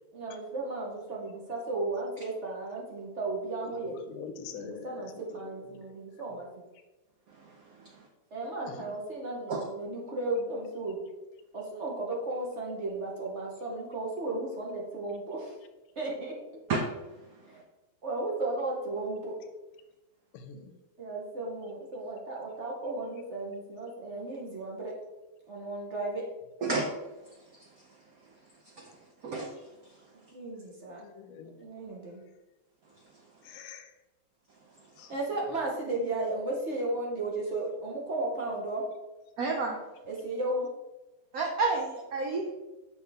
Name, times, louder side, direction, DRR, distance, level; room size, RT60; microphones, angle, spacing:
voice 1, 0.1-3.9 4.5-6.5 8.3-11.0 11.5-15.5 16.0-16.3 17.5-17.6 18.0-19.4 21.0-24.9 25.5-26.2 30.3-31.0 31.6-32.2 35.1-38.8 40.1-40.7, right 2 dB, 45° right, -2 dB, 0.9 m, -34 dB
voice 2, 3.7-5.0 20.3-20.6 31.0-31.5 33.5-33.9 35.0-35.1, left 6 dB, 85° left, 8 dB, 1.5 m, -43 dB
voice 3, 39.4-39.8 41.3-42.5, right 3 dB, 85° right, 2 dB, 0.8 m, -29 dB
6.0 x 5.2 x 3.4 m, 1.1 s
omnidirectional pair, 2.3 m